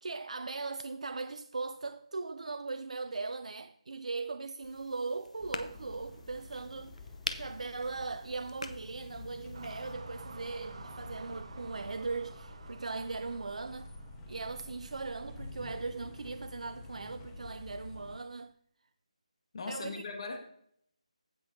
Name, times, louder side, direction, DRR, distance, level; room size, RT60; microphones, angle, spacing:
voice 1, 0.0-7.1 7.3-13.9 14.3-18.5 19.7-20.0, right 3 dB, 75° right, 0.4 m, -39 dB
sound 1, 4.6-9.9, left 3 dB, 80° left, 0.8 m, -45 dB
sound 2, 5.4-18.2, left 2 dB, 15° left, 1.1 m, -49 dB
sound 3, 9.5-14.5, right 3 dB, 55° right, 0.9 m, -51 dB
voice 2, 19.5-20.4, left 4 dB, 55° left, 1.7 m, -39 dB
16.0 x 6.0 x 2.7 m
figure-of-eight pair, 160°, 4 cm